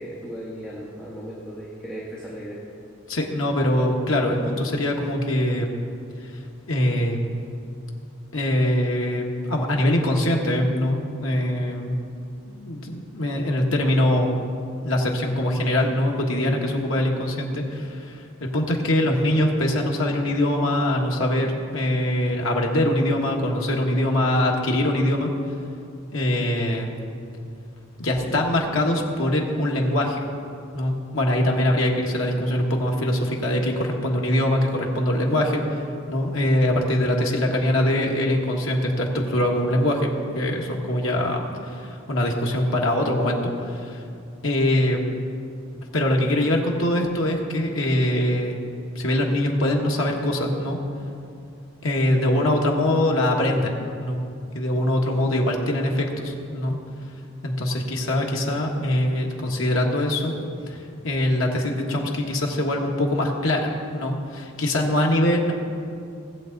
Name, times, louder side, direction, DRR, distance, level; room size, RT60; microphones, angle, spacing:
voice 1, 0.0-2.6, equal, 5° left, -7 dB, 1.4 m, -36 dB
voice 2, 3.1-5.7 6.3-6.4 6.7-7.2 8.3-12.0 12.5-14.3 14.8-25.3 26.1-26.9 28.0-30.2 30.7-44.0 44.4-45.0 45.9-48.6 48.9-50.8 51.8-54.2 54.5-56.8 57.4-60.4 60.7-65.5, left 1 dB, 75° left, 0 dB, 1.5 m, -23 dB
18.0 x 7.6 x 4.0 m, 2.5 s
head